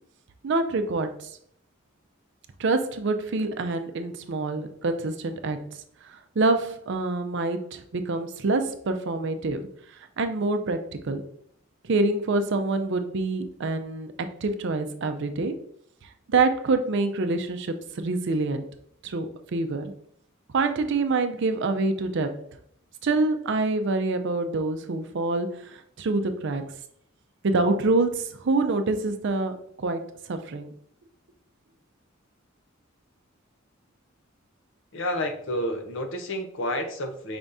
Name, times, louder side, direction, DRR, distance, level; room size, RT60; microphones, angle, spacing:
voice 1, 0.4-1.3 2.6-5.6 6.0-9.7 10.2-11.2 11.8-15.6 16.3-18.7 19.0-19.9 20.5-22.4 23.0-26.6 27.4-30.7, right 3 dB, 60° right, 7 dB, 0.5 m, -26 dB
voice 2, 34.9-37.4, left 1 dB, 65° left, 6 dB, 0.7 m, -30 dB
5.1 x 3.5 x 2.6 m, 0.65 s
head